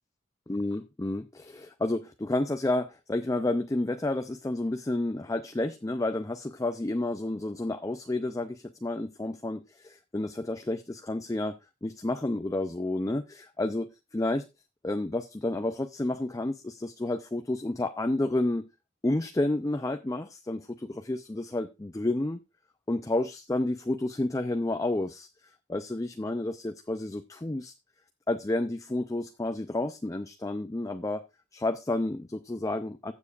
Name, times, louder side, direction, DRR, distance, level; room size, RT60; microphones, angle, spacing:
voice 1, 0.5-11.6 11.8-14.5 14.8-18.7 19.0-22.4 22.9-25.3 25.7-27.7 28.3-31.2 31.5-33.1, left 2 dB, 15° left, 0.5 m, -30 dB
15.0 x 7.2 x 2.4 m
head